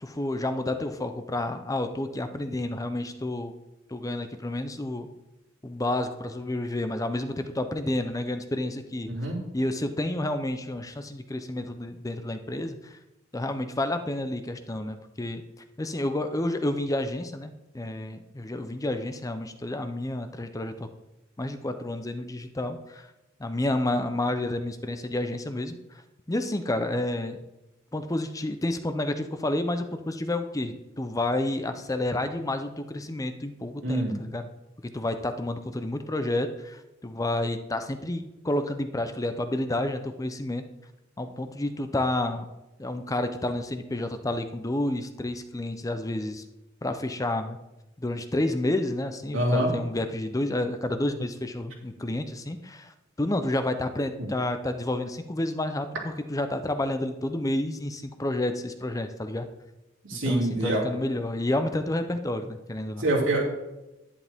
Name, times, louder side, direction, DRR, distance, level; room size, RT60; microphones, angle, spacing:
voice 1, 0.0-3.5 3.9-5.1 5.6-9.1 9.5-13.0 13.3-15.4 15.8-20.9 21.4-23.1 23.4-25.8 26.3-27.4 27.9-34.5 34.9-40.6 41.2-42.5 42.8-46.4 46.8-47.6 48.0-59.5 60.1-63.1, left 1 dB, 15° left, 8 dB, 0.6 m, -30 dB
voice 2, 33.8-34.1 49.3-49.7 54.2-54.3 60.1-60.8 63.0-63.4, right 1 dB, 90° right, -2 dB, 3.2 m, -25 dB
11.0 x 9.9 x 3.5 m, 0.97 s
head